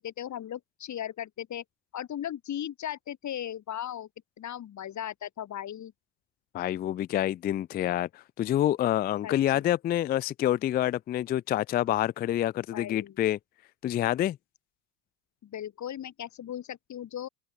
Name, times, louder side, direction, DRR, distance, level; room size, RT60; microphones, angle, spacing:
voice 1, 0.0-1.6 1.9-4.1 4.4-5.9 9.2-9.6 12.7-13.2 15.4-17.3, left 10 dB, 40° left, 4.6 m, -37 dB
voice 2, 6.5-13.4 13.8-14.4, left 12 dB, 25° left, 0.4 m, -27 dB
open air
hypercardioid pair, 90°, 43 cm